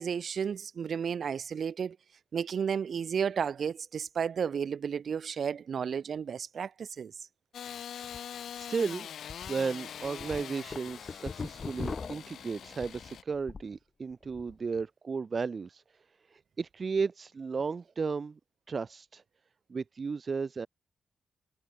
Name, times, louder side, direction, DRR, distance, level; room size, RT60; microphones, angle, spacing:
voice 1, 0.0-2.0 2.3-7.1, right 7 dB, 60° right, 4.8 m, -32 dB
Engine starting / Sawing, 7.5-13.2, left 9 dB, 75° left, 7.7 m, -43 dB
sound 1, 8.0-8.2 8.6-8.7 9.3-9.5 9.9-13.8 14.1-14.5, left 5 dB, 40° left, 3.0 m, -40 dB
voice 2, 8.5-9.1 9.5-15.8 16.3-18.4 18.7-19.2 19.7-20.7, right 5 dB, 40° right, 2.6 m, -34 dB
cardioid pair, 100°, 0 cm